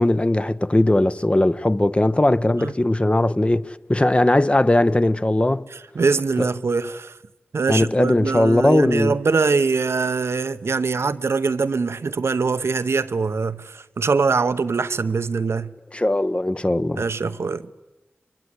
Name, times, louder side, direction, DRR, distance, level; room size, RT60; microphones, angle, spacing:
voice 1, 0.0-5.6 6.4-6.5 7.7-9.2 15.9-17.0, left 1 dB, 25° left, 0.9 m, -19 dB
voice 2, 5.9-7.1 7.5-15.7 17.0-17.8, right 4 dB, 80° right, 0.8 m, -23 dB
23.5 x 23.0 x 9.7 m
cardioid pair, 45°, 4 cm